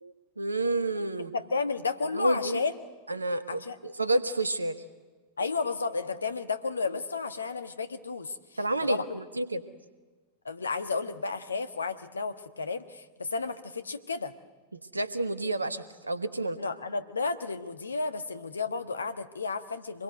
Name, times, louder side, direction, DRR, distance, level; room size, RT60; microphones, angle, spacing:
voice 1, 0.0-1.3 2.1-2.6 3.1-4.8 8.6-9.6 14.7-16.6, right 2 dB, 80° right, 12 dB, 1.3 m, -30 dB
voice 2, 1.3-2.7 3.5-3.8 5.4-8.4 8.9-9.2 10.4-14.3 16.6-20.0, left 4 dB, 75° left, 9 dB, 1.3 m, -32 dB
25.5 x 21.5 x 8.0 m, 1.3 s
figure-of-eight pair, 90°, 0 cm